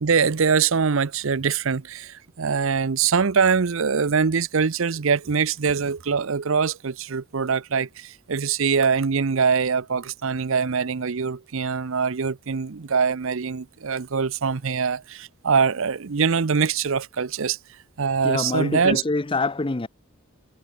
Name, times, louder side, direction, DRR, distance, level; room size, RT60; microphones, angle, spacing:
voice 1, 0.0-17.6 18.0-19.0, right 5 dB, 60° right, 0.6 m, -23 dB
voice 2, 18.2-19.9, left 3 dB, 25° left, 0.6 m, -25 dB
head